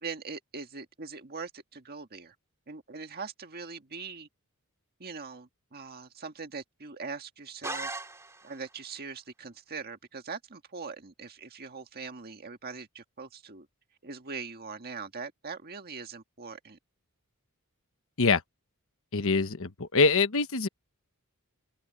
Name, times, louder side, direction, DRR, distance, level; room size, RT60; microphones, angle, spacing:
voice 1, 0.0-2.3 2.7-4.3 5.0-7.9 8.4-13.7 14.0-16.8, right 4 dB, 45° right, 1.7 m, -41 dB
sound 1, 7.6-8.7, right 2 dB, 15° right, 2.5 m, -38 dB
voice 2, 19.1-20.7, left 4 dB, 65° left, 1.2 m, -24 dB
open air
head